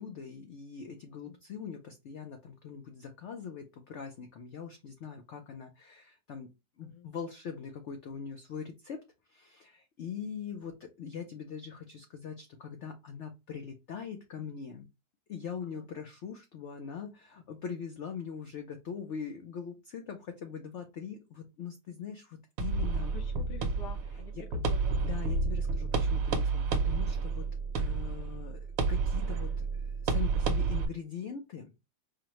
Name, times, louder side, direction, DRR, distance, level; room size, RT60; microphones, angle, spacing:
voice 1, 0.0-6.5 6.8-14.9 15.3-23.1 24.3-24.5 25.0-27.5 27.8-31.7, left 7 dB, 60° left, 0.7 m, -42 dB
voice 2, 6.8-7.1 15.6-15.9 23.1-25.1, left 4 dB, 80° left, 1.5 m, -49 dB
sound 1, 22.6-30.8, right 4 dB, 65° right, 1.0 m, -30 dB
4.8 x 2.2 x 3.0 m
omnidirectional pair, 1.8 m